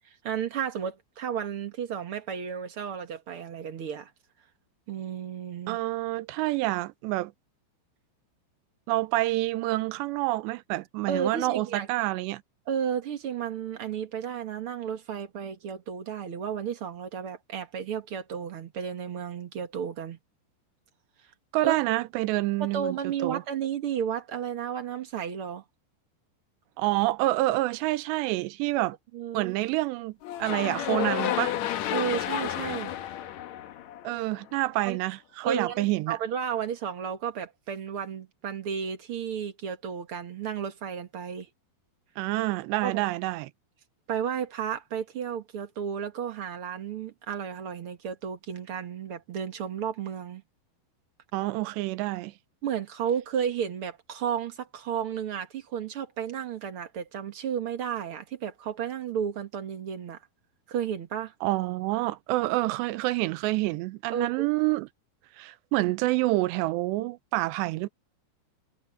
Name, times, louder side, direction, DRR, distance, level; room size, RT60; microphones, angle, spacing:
voice 1, 0.2-4.1 4.9-5.8 11.1-11.9 12.7-20.2 21.6-21.7 22.6-25.6 28.8-28.9 29.1-29.5 31.9-32.9 34.8-35.0 35.4-41.5 42.8-43.0 44.1-50.4 52.6-60.2 60.7-61.3 64.1-64.5, right 8 dB, 55° right, 1.5 m, -33 dB
voice 2, 5.7-7.3 8.9-12.4 21.5-23.0 23.2-23.4 26.8-29.0 29.3-31.6 34.0-36.2 42.2-43.5 51.3-52.3 61.4-64.9 65.4-67.9, right 19 dB, 90° right, 3.0 m, -27 dB
sound 1, 30.2-34.4, left 11 dB, 80° left, 1.6 m, -31 dB
omnidirectional pair, 4.9 m